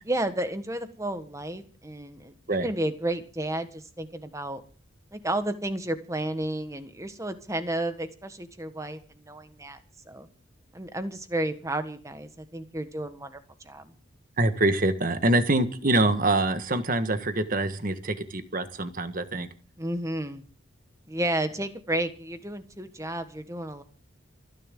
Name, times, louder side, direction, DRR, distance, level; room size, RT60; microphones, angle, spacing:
voice 1, 0.1-4.6 5.1-9.0 9.3-9.8 10.1-10.3 10.7-13.4 13.6-13.9 19.8-20.4 21.1-23.8, right 1 dB, 15° right, 9 dB, 1.4 m, -32 dB
voice 2, 14.4-19.5, right 2 dB, 45° right, 10 dB, 1.5 m, -25 dB
27.0 x 10.5 x 3.8 m, 0.38 s
head